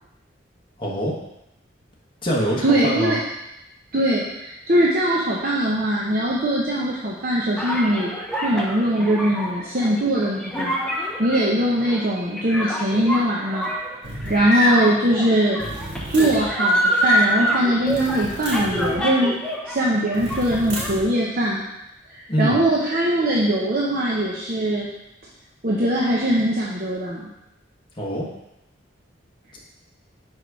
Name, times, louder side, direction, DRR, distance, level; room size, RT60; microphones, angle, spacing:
voice 1, 0.8-1.2 2.2-3.2 22.3-22.6 28.0-28.3, equal, 25° left, -4 dB, 1.2 m, -24 dB
voice 2, 2.6-3.2 3.9-8.1 8.4-13.7 14.1-15.6 16.1-19.4 19.7-21.6 22.1-24.9 25.6-27.3, right 1 dB, 45° right, -5 dB, 0.8 m, -21 dB
sound 1, 7.6-19.8 20.1-20.9, equal, 5° left, 0.7 m, -25 dB
sound 2, 14.0-14.5 15.6-16.5 17.9-19.0 20.1-21.1, right 1 dB, 75° right, 1.7 m, -33 dB
6.0 x 4.8 x 4.8 m, 0.88 s
head